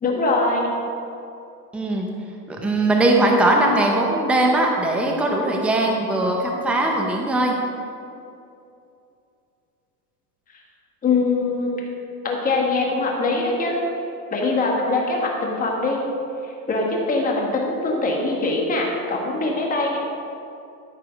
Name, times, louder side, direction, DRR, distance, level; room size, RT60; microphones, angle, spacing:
voice 1, 0.0-0.7 11.0-11.7 12.2-13.8 14.3-16.0 16.4-20.0, left 3 dB, 15° left, -1 dB, 1.4 m, -22 dB
voice 2, 1.7-2.1 2.5-7.5, right 1 dB, 5° right, 0 dB, 0.6 m, -20 dB
13.0 x 4.9 x 5.8 m, 2.6 s
supercardioid pair, 150°, 48 cm